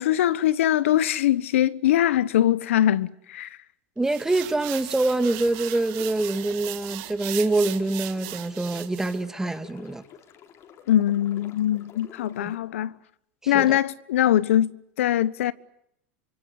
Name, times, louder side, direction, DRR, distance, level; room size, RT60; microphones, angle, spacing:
voice 1, 0.0-3.5 10.9-13.0 13.5-15.5, left 12 dB, 85° left, 1.2 m, -22 dB
voice 2, 4.0-10.0 12.4-12.5 13.5-13.8, right 2 dB, 5° right, 1.8 m, -25 dB
sound 1, 4.1-9.2, right 18 dB, 60° right, 2.3 m, -37 dB
sound 2, 5.1-12.6, left 9 dB, 40° left, 4.2 m, -49 dB
27.5 x 25.5 x 8.3 m
supercardioid pair, 120°, 7 cm